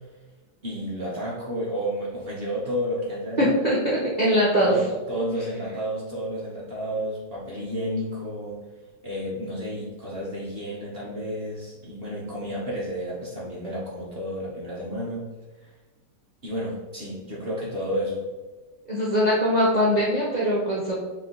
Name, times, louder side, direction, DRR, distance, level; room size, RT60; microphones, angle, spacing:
voice 1, 0.6-3.5 4.7-8.6 9.0-15.3 15.6-15.7 16.4-18.2, equal, 50° right, -6 dB, 0.7 m, -31 dB
voice 2, 3.4-4.8 18.9-20.9, equal, 90° right, -7 dB, 0.3 m, -22 dB
4.2 x 2.7 x 3.7 m, 1.3 s
omnidirectional pair, 2.0 m